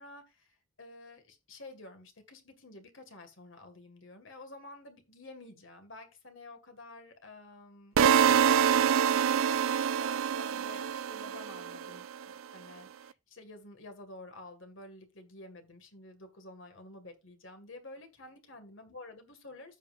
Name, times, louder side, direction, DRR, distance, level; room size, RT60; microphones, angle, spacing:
voice 1, 0.0-8.0 8.4-19.8, left 2 dB, 70° left, 7 dB, 2.0 m, -50 dB
sound 1, 8.0-12.0, right 8 dB, 90° right, 0.4 m, -26 dB
15.0 x 5.6 x 2.5 m, 0.26 s
head